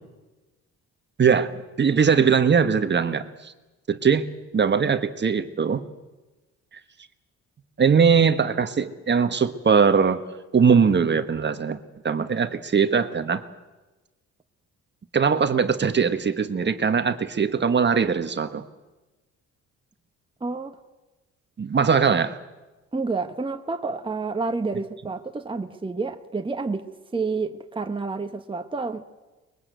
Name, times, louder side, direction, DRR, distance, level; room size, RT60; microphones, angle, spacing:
voice 1, 1.2-1.5 1.8-3.5 3.9-4.3 4.5-5.9 7.8-10.2 10.5-11.8 12.0-13.4 15.1-18.6 21.6-22.4, right 6 dB, 35° right, 9 dB, 1.4 m, -21 dB
voice 2, 20.4-20.8 22.9-29.0, right 4 dB, 15° right, 6 dB, 1.3 m, -29 dB
23.5 x 21.5 x 8.2 m, 1.1 s
cardioid pair, 90°, 30 cm